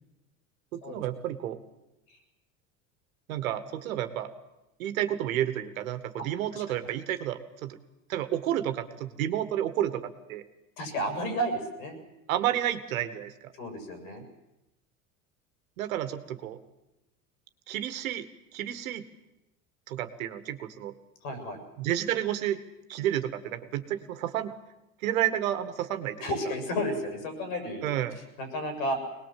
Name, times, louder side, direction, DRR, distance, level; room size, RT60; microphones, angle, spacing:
voice 1, 0.7-1.6 3.3-4.3 4.8-7.8 8.1-10.4 12.3-13.5 15.8-16.6 17.7-19.0 19.9-20.9 21.8-22.6 22.9-24.5 25.0-26.3 27.8-28.2, right 11 dB, 80° right, 10 dB, 1.9 m, -31 dB
voice 2, 10.8-12.0 13.6-14.2 21.2-21.6 26.2-27.8 28.4-29.0, equal, 75° left, 5 dB, 6.9 m, -32 dB
22.5 x 19.5 x 7.7 m, 0.94 s
hypercardioid pair, 80°, 40 cm